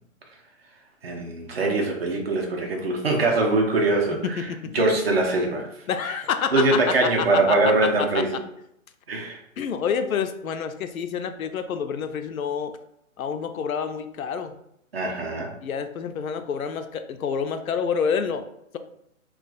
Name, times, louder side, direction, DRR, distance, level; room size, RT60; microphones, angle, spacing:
voice 1, 1.0-4.5 4.7-5.7 6.0-6.1 6.5-8.4 9.1-9.4 14.9-15.5, right 2 dB, 45° right, 1 dB, 0.6 m, -22 dB
voice 2, 4.4-4.7 5.9-7.6 8.1-8.2 9.6-12.7 13.2-14.6 15.6-18.5, left 7 dB, 75° left, 9 dB, 0.5 m, -28 dB
2.4 x 2.3 x 3.8 m, 0.77 s
hypercardioid pair, 170°, 42 cm